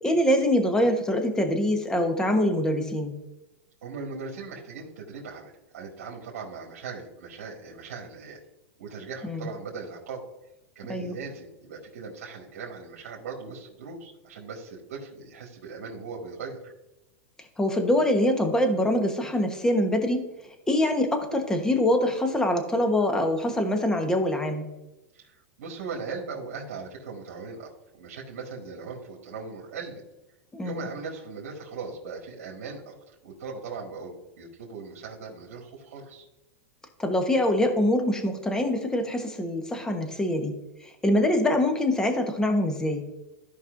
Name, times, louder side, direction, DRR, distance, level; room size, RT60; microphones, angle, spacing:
voice 1, 0.0-3.1 9.2-9.4 10.9-11.2 17.6-20.3 20.7-24.7 30.5-30.9 37.0-40.5 40.8-43.0, left 1 dB, 10° left, 5 dB, 1.2 m, -24 dB
voice 2, 3.8-8.4 8.8-10.2 10.8-16.7 25.1-30.0 30.6-36.3, right 4 dB, 75° right, -2 dB, 1.8 m, -39 dB
14.0 x 5.3 x 2.6 m, 0.99 s
supercardioid pair, 135°, 8 cm